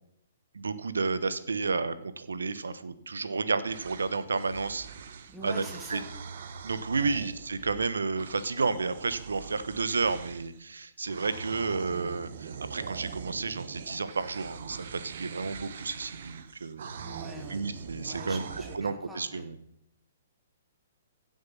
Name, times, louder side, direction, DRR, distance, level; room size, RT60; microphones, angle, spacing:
voice 1, 0.5-4.9 5.4-5.6 5.9-6.0 6.6-17.0 17.5-18.4 18.7-19.6, right 4 dB, 80° right, 13 dB, 1.1 m, -31 dB
sound 1, 3.7-10.6 11.0-18.8, right 6 dB, 60° right, 1.3 m, -43 dB
voice 2, 5.3-6.1 7.0-7.2 16.8-17.6 18.0-19.5, right 1 dB, 5° right, 1 dB, 3.0 m, -45 dB
16.0 x 7.8 x 5.6 m, 0.75 s
hypercardioid pair, 125°, 0 cm